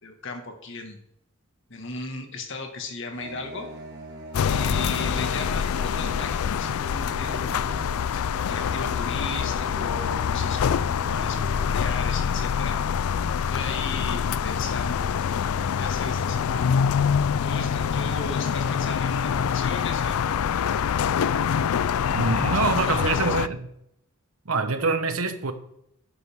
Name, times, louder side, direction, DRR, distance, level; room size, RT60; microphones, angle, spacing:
voice 1, 0.0-1.0 1.7-3.7 4.4-7.9 8.4-11.4 11.6-12.8 13.5-15.1 15.7-16.7 17.4-20.3 22.3-23.4, left 3 dB, 60° left, 1.9 m, -36 dB
sound 1, 3.1-11.6, equal, 55° right, 1.9 m, -41 dB
sound 2, 4.3-23.5, left 7 dB, 85° left, 0.4 m, -25 dB
voice 2, 22.0-23.7 24.4-25.5, right 4 dB, 90° right, 1.1 m, -25 dB
12.0 x 9.3 x 3.7 m
head